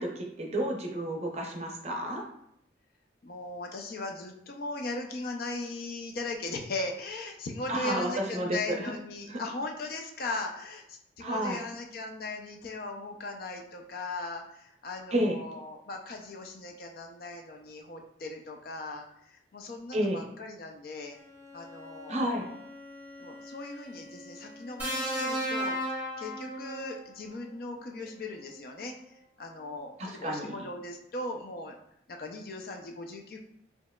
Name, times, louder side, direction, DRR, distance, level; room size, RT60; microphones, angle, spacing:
voice 1, 0.0-2.2 7.7-8.8 9.3-9.4 11.2-11.6 15.1-15.4 19.9-20.2 22.1-22.4 30.2-30.5, right 1 dB, 35° right, 0 dB, 0.6 m, -30 dB
voice 2, 3.2-21.2 21.5-22.6 23.2-25.8 26.2-28.9 29.4-31.8 32.1-33.4, left 2 dB, 50° left, 3 dB, 0.4 m, -38 dB
Bowed string instrument, 21.1-25.5, left 2 dB, 10° left, 0.9 m, -49 dB
sound 1, 24.8-27.1 28.4-28.6, equal, 10° right, 1.5 m, -33 dB
4.4 x 2.8 x 2.2 m, 0.73 s
head